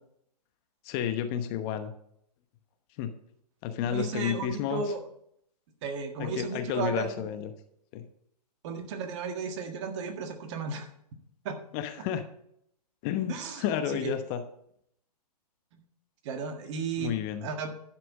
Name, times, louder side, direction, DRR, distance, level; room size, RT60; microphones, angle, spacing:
voice 1, 0.8-1.9 3.0-3.1 3.6-4.8 6.2-7.5 7.9-8.0 11.7-12.2 13.0-14.4 17.0-17.5, left 9 dB, 35° left, 8 dB, 1.0 m, -31 dB
voice 2, 3.8-5.0 5.8-7.3 8.6-10.9 11.5-11.6 13.3-13.6 13.9-14.2 16.2-17.7, right 5 dB, 45° right, 5 dB, 1.7 m, -34 dB
11.5 x 6.0 x 5.3 m, 0.70 s
hypercardioid pair, 120°, 21 cm